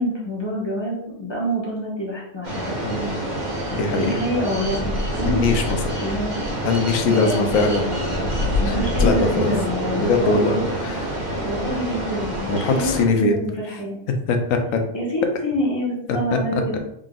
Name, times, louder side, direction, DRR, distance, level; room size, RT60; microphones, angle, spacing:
voice 1, 0.0-2.5 3.9-5.5 6.0-6.3 7.1-7.5 8.6-10.6 11.4-14.0 14.9-16.8, equal, 20° left, -5 dB, 1.0 m, -26 dB
sound 1, 2.4-13.0, equal, 40° right, 0.9 m, -26 dB
voice 2, 2.8-3.2 3.7-4.2 5.2-5.8 6.6-8.4 8.7-9.5 9.9-11.0 12.5-13.4 14.3-14.8 16.1-16.4 16.7-16.8, left 4 dB, 75° left, 5 dB, 1.0 m, -22 dB
3.8 x 3.7 x 2.3 m, 0.73 s
omnidirectional pair, 1.4 m